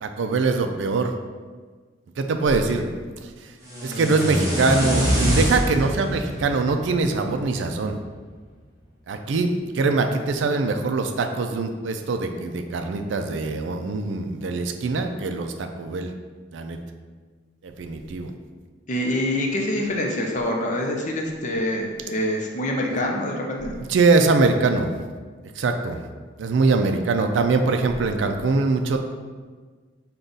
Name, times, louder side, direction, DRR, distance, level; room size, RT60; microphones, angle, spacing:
voice 1, 0.0-1.1 2.2-2.9 3.2-3.6 3.8-8.0 9.1-16.1 16.5-16.8 17.6-18.3 23.7-24.9 25.5-26.0 26.4-29.0, right 3 dB, 70° right, 6 dB, 0.4 m, -23 dB
sound 1, 3.6-7.7, equal, 15° right, 0.9 m, -25 dB
voice 2, 18.9-23.7, left 1 dB, 40° left, 0 dB, 0.6 m, -25 dB
5.1 x 2.3 x 3.9 m, 1.5 s
head